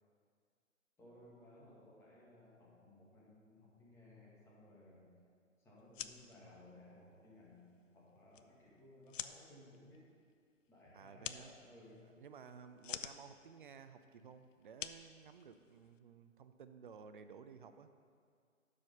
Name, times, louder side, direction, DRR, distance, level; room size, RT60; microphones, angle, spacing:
voice 1, 1.0-5.2 5.6-10.1 10.7-12.1, left 1 dB, 5° left, -6 dB, 1.5 m, -60 dB
sound 1, 5.8-16.0, left 8 dB, 70° left, 0.6 m, -51 dB
voice 2, 10.9-11.5 12.2-17.9, right 6 dB, 40° right, 10 dB, 0.5 m, -55 dB
12.0 x 5.0 x 5.3 m, 2.2 s
figure-of-eight pair, 145°, 40 cm